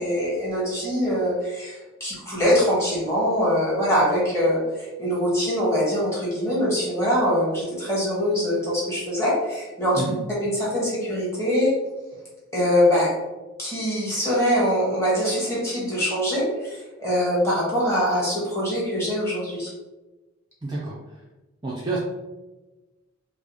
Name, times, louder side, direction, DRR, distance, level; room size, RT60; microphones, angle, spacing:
voice 1, 0.0-10.0 10.4-11.7 12.5-13.2 13.6-19.7, equal, 15° left, -7 dB, 1.3 m, -23 dB
voice 2, 20.6-21.2 21.6-22.0, right 2 dB, 20° right, -6 dB, 0.4 m, -29 dB
4.6 x 2.0 x 2.9 m, 1.1 s
head